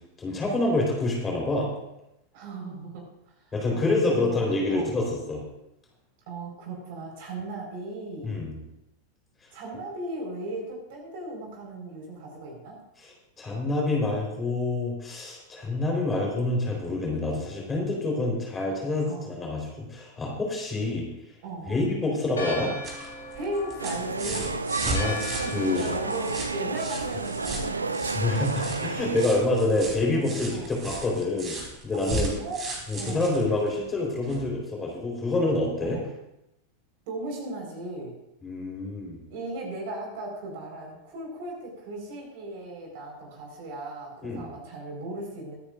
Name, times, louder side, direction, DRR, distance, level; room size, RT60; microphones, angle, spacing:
voice 1, 0.2-1.7 3.5-5.4 8.2-8.6 13.4-21.1 21.7-22.7 24.8-25.2 25.5-25.8 28.1-31.6 31.8-32.3 32.9-36.0 38.4-39.2 44.2-44.5, left 2 dB, 15° left, -2 dB, 4.2 m, -27 dB
voice 2, 2.3-3.0 3.4-4.4 4.7-4.9 6.3-8.4 9.5-12.8 17.1-17.3 19.0-19.3 21.4-21.9 23.3-24.6 25.2-28.0 30.1-30.7 32.1-32.7 32.9-33.3 35.8-36.1 37.1-38.2 39.3-45.6, right 2 dB, 50° right, 0 dB, 4.8 m, -37 dB
Church bell, 22.3-28.6, left 2 dB, 70° left, 3.0 m, -40 dB
sound 1, 22.5-34.5 35.8-35.9, right 2 dB, 30° right, 3.8 m, -36 dB
sound 2, 23.8-29.3, right 3 dB, 80° right, 0.5 m, -31 dB
23.5 x 9.7 x 2.6 m, 0.86 s
figure-of-eight pair, 90°, 0 cm